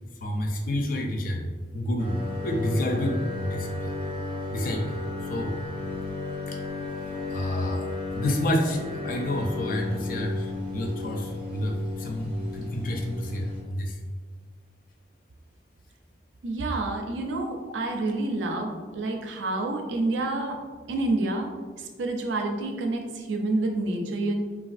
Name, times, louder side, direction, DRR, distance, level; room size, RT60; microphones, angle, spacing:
voice 1, 0.2-3.9 4.5-5.6 6.5-6.6 7.3-14.0, left 1 dB, 50° left, 2 dB, 0.4 m, -29 dB
sound 1, 2.0-13.6, left 2 dB, 30° right, 0.5 m, -34 dB
voice 2, 16.4-20.6 20.9-21.5 21.8-24.3, right 2 dB, 85° right, 3 dB, 0.4 m, -28 dB
3.3 x 2.3 x 2.4 m, 1.5 s
head